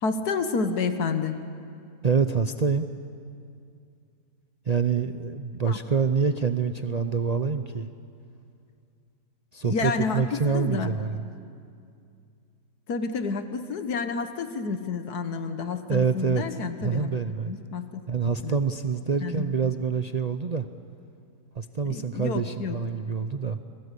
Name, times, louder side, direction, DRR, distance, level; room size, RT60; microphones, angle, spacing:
voice 1, 0.0-1.3 5.7-5.8 9.6-10.9 12.9-17.1 17.5-18.0 18.4-18.6 19.2-19.5 21.9-22.8, left 4 dB, 80° left, 8 dB, 1.7 m, -29 dB
voice 2, 2.0-2.9 4.7-7.9 9.5-11.3 15.9-16.4 16.8-17.5 18.1-20.7 21.6-23.6, right 5 dB, 50° right, 9 dB, 0.5 m, -26 dB
29.5 x 21.5 x 8.3 m, 2.4 s
omnidirectional pair, 1.6 m